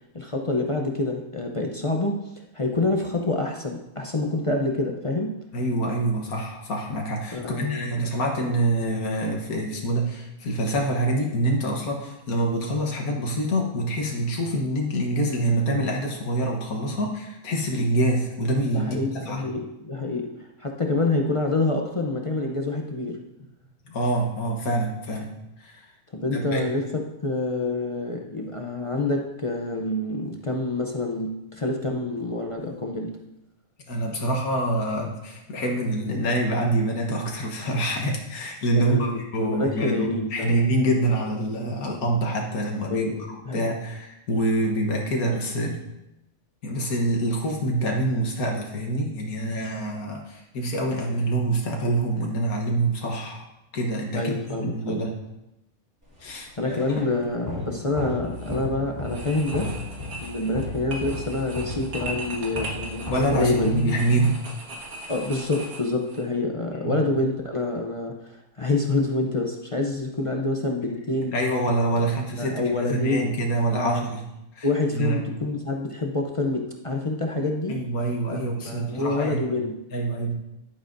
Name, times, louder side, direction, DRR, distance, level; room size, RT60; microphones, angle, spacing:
voice 1, 0.1-5.4 7.3-8.0 18.7-23.2 26.1-33.2 38.7-40.6 42.9-43.7 54.1-55.0 56.6-59.7 60.2-63.8 65.1-71.3 72.0-72.1 72.4-73.4 73.7-74.1 74.6-77.8 78.3-79.8, left 2 dB, 35° left, 2 dB, 0.5 m, -27 dB
voice 2, 5.5-19.4 23.9-25.3 25.6-25.9 26.3-26.6 33.9-45.8 46.6-53.4 53.7-55.1 56.2-56.5 56.9-57.0 63.1-64.4 66.8-67.0 71.3-74.2 74.5-74.7 74.9-75.2 77.7-79.4 79.9-80.3, right 1 dB, 90° left, 0 dB, 1.7 m, -26 dB
sound 1, 56.2-64.3, left 2 dB, 15° right, 3.1 m, -35 dB
sound 2, 58.2-58.6 59.0-66.2, right 2 dB, 85° right, 2.1 m, -39 dB
11.0 x 8.9 x 2.6 m, 0.91 s
omnidirectional pair, 1.5 m